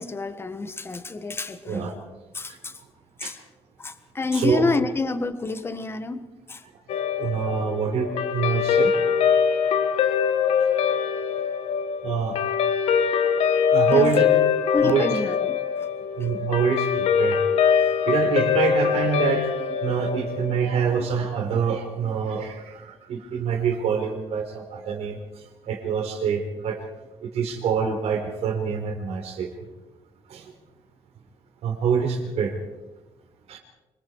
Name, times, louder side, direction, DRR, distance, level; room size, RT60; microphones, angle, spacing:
voice 1, 0.0-2.0 2.3-2.8 3.2-3.4 3.8-6.6 13.9-14.1 14.7-15.9 16.2-16.3, left 3 dB, 20° left, 10 dB, 1.5 m, -28 dB
voice 2, 4.3-4.7 7.0-10.3 10.7-11.0 12.0-12.4 13.7-14.3 14.8-15.1 16.2-17.4 18.1-26.8 27.2-29.6 30.3-30.5 31.6-32.6 33.5-33.6, right 6 dB, 70° right, 3 dB, 4.7 m, -26 dB
Guitar, 6.9-21.5, left 7 dB, 75° left, 1.7 m, -23 dB
26.5 x 22.0 x 4.8 m, 1.1 s
cardioid pair, 125°, 11 cm